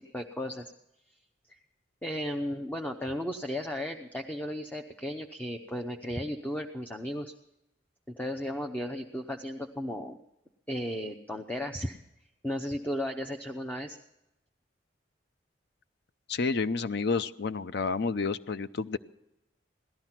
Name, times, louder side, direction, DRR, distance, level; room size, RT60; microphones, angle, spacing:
voice 1, 0.1-0.7 1.5-1.6 2.0-7.3 8.2-10.2 10.7-12.0 12.4-14.0, equal, 10° left, 4 dB, 0.7 m, -35 dB
voice 2, 16.3-19.0, left 4 dB, 60° left, 13 dB, 0.6 m, -30 dB
17.5 x 12.5 x 5.9 m, 0.87 s
head